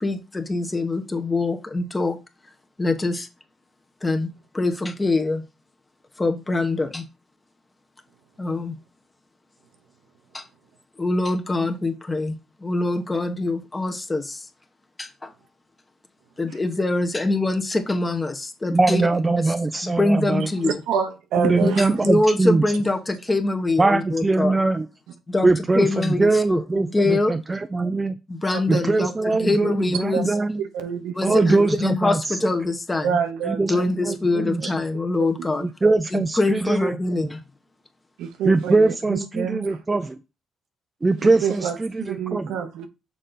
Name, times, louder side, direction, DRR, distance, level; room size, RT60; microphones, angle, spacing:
voice 1, 0.0-2.2 2.8-3.3 4.0-4.3 4.5-5.4 6.2-7.0 8.4-8.8 10.3-10.4 11.0-14.4 15.0-15.3 16.4-19.0 19.4-19.5 19.8-20.8 21.6-24.6 25.3-27.3 28.3-29.1 29.4-30.4 31.1-33.2 33.7-35.7 36.1-37.4, left 2 dB, 20° left, 1.1 m, -24 dB
voice 2, 18.7-20.5 21.4-22.6 23.8-24.9 25.4-28.1 28.7-30.6 31.2-32.4 33.4-33.8 34.0-34.7 35.6-36.9 38.4-40.2 41.0-42.6, right 3 dB, 20° right, 0.5 m, -22 dB
voice 3, 20.6-21.9 28.5-29.1 29.4-29.7 30.1-30.2 30.7-31.7 33.0-34.5 38.2-39.7 41.2-42.9, right 7 dB, 90° right, 0.9 m, -28 dB
6.4 x 3.9 x 3.9 m
cardioid pair, 90°, 0 cm